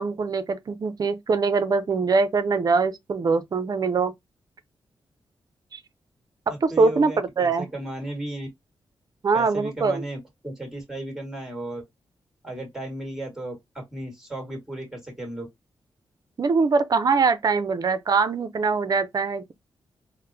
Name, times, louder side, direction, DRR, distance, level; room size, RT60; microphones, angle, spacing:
voice 1, 0.0-4.1 5.7-5.8 6.5-7.7 9.2-10.0 16.4-19.5, right 4 dB, 45° right, 0.5 m, -23 dB
voice 2, 6.5-8.5 9.3-11.8 12.4-15.5, right 1 dB, 5° right, 1.7 m, -35 dB
4.0 x 2.0 x 2.7 m
cardioid pair, 80°, 9 cm